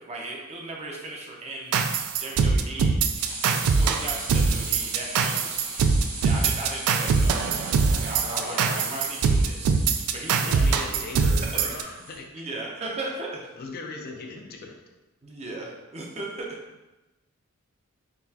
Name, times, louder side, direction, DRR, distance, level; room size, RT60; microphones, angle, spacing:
voice 1, 0.0-1.8 2.2-3.0 3.5-5.9 6.2-7.7 8.0-9.7 10.0-11.0 11.8-11.9 12.3-13.5 15.2-16.5, right 2 dB, 30° right, -1 dB, 0.5 m, -37 dB
sound 1, 1.7-11.8, right 5 dB, 85° right, 0.3 m, -23 dB
sound 2, 3.1-12.2, right 2 dB, 60° right, 1.3 m, -38 dB
voice 2, 8.2-9.0 10.4-12.3 13.6-14.8, left 3 dB, 45° left, 2 dB, 0.4 m, -38 dB
3.8 x 2.9 x 2.8 m, 1.1 s
head